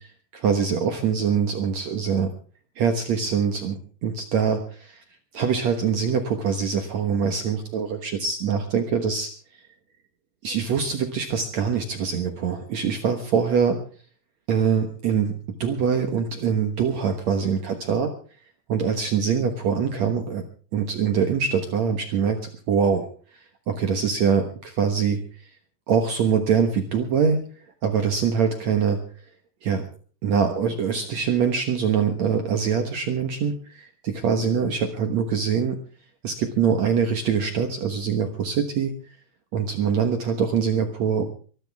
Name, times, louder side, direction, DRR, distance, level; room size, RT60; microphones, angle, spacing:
voice 1, 0.3-2.3 2.8-3.7 4.0-5.0 5.3-9.3 10.4-13.8 14.5-15.3 15.6-18.1 18.7-20.4 20.7-22.4 22.7-23.1 23.7-25.2 25.9-27.4 27.8-29.0 29.6-29.8 30.2-35.8 36.2-38.9 39.5-41.3, right 6 dB, 75° right, 5 dB, 1.6 m, -23 dB
23.0 x 14.0 x 3.5 m, 0.40 s
omnidirectional pair, 5.2 m